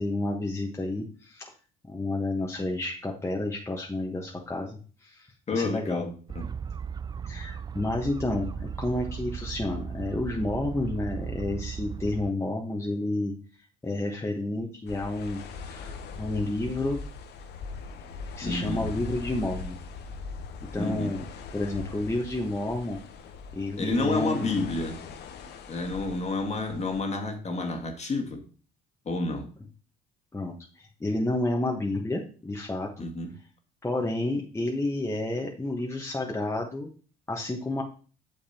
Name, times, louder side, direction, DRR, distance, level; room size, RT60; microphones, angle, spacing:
voice 1, 0.0-1.5 1.9-6.0 7.2-13.4 13.8-17.0 18.4-19.8 20.7-21.3 21.5-23.0 23.5-24.5 30.3-33.1 33.8-36.9 37.3-37.8, left 2 dB, 15° left, 0 dB, 1.2 m, -30 dB
voice 2, 5.5-6.5 18.4-18.9 20.8-21.1 23.8-25.0 25.7-28.4 29.1-29.5 33.0-33.3, left 3 dB, 35° left, 4 dB, 1.8 m, -30 dB
sound 1, 6.3-12.3, right 7 dB, 20° right, 0.3 m, -36 dB
sound 2, 14.9-27.0, left 4 dB, 60° left, 1.0 m, -41 dB
8.7 x 6.5 x 2.9 m, 0.39 s
hypercardioid pair, 65°, 20 cm